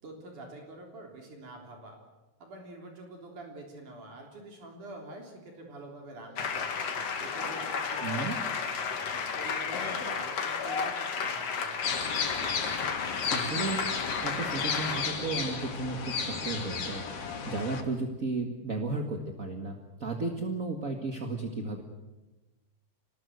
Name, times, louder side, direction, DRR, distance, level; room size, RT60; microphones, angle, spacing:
voice 1, 0.0-2.0 2.4-6.8 7.2-8.7 9.3-11.9, right 2 dB, 65° right, 1 dB, 5.0 m, -46 dB
sound 1, 6.4-15.1, left 6 dB, 50° left, 3.0 m, -33 dB
voice 2, 8.0-8.4 13.3-13.8 14.2-17.0 17.5-21.8, right 3 dB, 35° right, 3 dB, 1.6 m, -34 dB
sound 2, 11.8-17.8, left 5 dB, 80° left, 4.4 m, -34 dB
26.5 x 20.0 x 8.0 m, 1.1 s
omnidirectional pair, 3.9 m